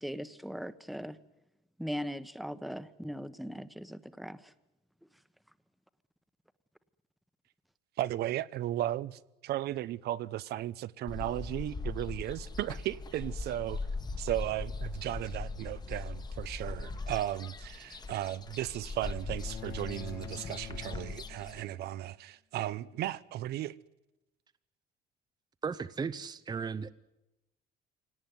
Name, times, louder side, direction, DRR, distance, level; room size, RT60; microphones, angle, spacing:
voice 1, 0.0-1.2 1.8-4.5, equal, ahead, 1.1 m, -39 dB
voice 2, 8.0-13.8 14.2-23.8, right 13 dB, 75° right, 0.8 m, -35 dB
sound 1, 11.1-21.6, left 3 dB, 25° left, 1.4 m, -40 dB
sound 2, 19.4-21.9, left 12 dB, 70° left, 1.1 m, -46 dB
voice 3, 25.6-26.9, right 5 dB, 25° right, 0.8 m, -35 dB
25.0 x 18.0 x 9.5 m
cardioid pair, 110°, 17 cm